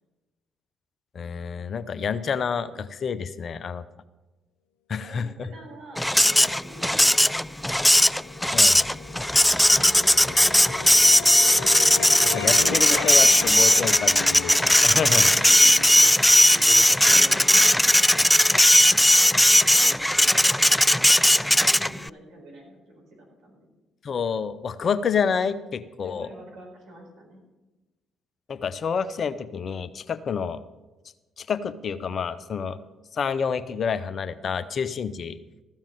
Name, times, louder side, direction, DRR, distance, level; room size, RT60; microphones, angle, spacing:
voice 1, 1.1-3.8 4.9-5.5 8.5-8.8 12.3-15.3 24.0-26.3 28.5-30.6 31.4-32.8 33.1-35.4, left 6 dB, 50° left, 14 dB, 0.7 m, -28 dB
voice 2, 4.9-7.8 9.4-11.5 15.1-15.8 16.7-18.3 18.9-19.0 19.3-23.7 26.0-27.4, right 1 dB, 70° right, -2 dB, 4.5 m, -46 dB
Printer, 6.0-22.1, left 1 dB, 5° left, 0.3 m, -18 dB
sound 1, 7.0-19.3, left 8 dB, 85° left, 0.6 m, -38 dB
14.5 x 7.3 x 7.5 m, 1.1 s
hypercardioid pair, 45°, 0 cm